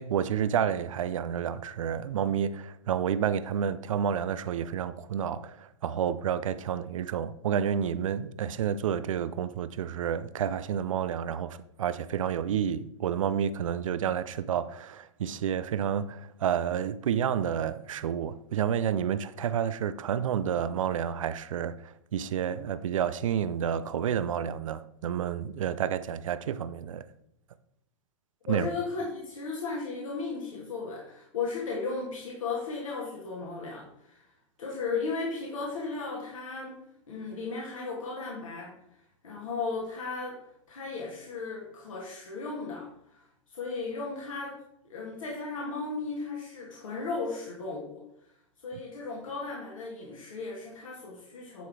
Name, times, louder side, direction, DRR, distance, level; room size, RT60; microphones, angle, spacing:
voice 1, 0.0-27.0 28.5-28.7, right 8 dB, 80° right, 0.5 m, -30 dB
voice 2, 28.5-34.3 34.6-36.8 37.1-38.7 39.2-44.6 44.8-48.3 48.6-51.7, left 4 dB, 85° left, 2.0 m, -35 dB
9.5 x 3.9 x 4.7 m
hypercardioid pair, 115°, 17 cm